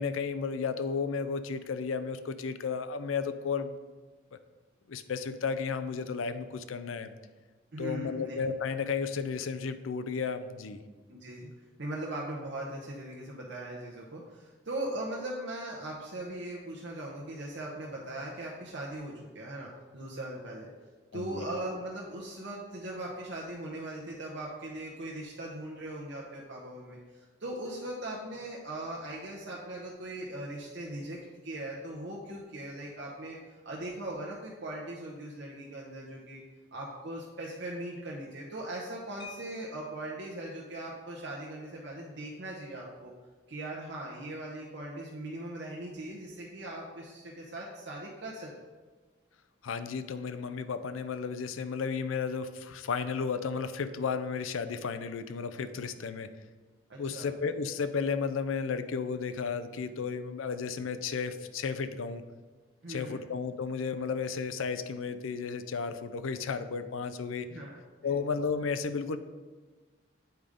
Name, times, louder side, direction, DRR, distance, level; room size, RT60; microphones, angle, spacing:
voice 1, 0.0-3.8 4.9-7.1 7.8-10.8 21.1-21.4 49.6-56.3 57.0-62.2 62.9-67.5 68.0-69.2, left 5 dB, 85° left, 11 dB, 0.5 m, -33 dB
voice 2, 7.7-8.4 11.1-11.5 11.8-20.7 21.1-36.4 36.7-43.1 43.5-48.5 56.9-57.3 62.8-63.2 67.5-67.7 68.0-68.2, right 1 dB, 60° right, -3 dB, 0.9 m, -39 dB
sound 1, 39.2-40.3 41.7-41.8 42.2-42.4 42.8-43.0, left 4 dB, 25° left, 0.6 m, -50 dB
7.9 x 5.0 x 3.6 m, 1.3 s
head